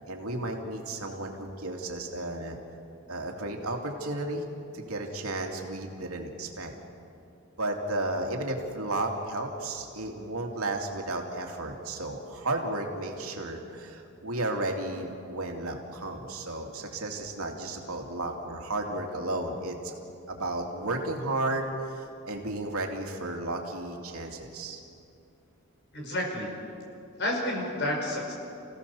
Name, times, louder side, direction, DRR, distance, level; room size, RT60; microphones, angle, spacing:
voice 1, 0.1-2.6 3.1-4.5 4.7-6.7 7.6-19.9 20.3-24.8, right 2 dB, 80° right, 2 dB, 2.6 m, -33 dB
voice 2, 25.9-26.5 27.2-28.3, left 1 dB, 50° left, -1 dB, 5.7 m, -30 dB
29.0 x 16.5 x 7.1 m, 2.7 s
head